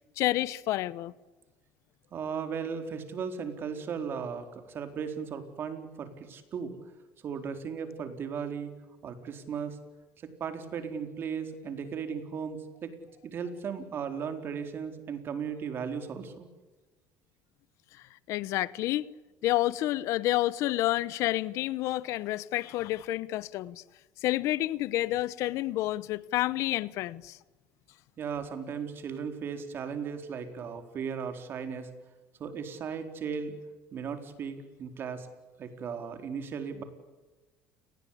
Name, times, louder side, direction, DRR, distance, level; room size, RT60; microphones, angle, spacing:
voice 1, 0.2-1.1 18.3-19.1 19.4-23.8 24.2-27.4, left 16 dB, 70° left, 0.9 m, -29 dB
voice 2, 2.1-6.8 7.2-8.7 9.0-9.8 10.2-12.9 13.2-16.5 28.2-31.9 32.4-33.6 33.9-35.3 35.6-36.8, right 6 dB, 45° right, 4.2 m, -36 dB
29.5 x 20.5 x 8.7 m
cardioid pair, 120°, 5 cm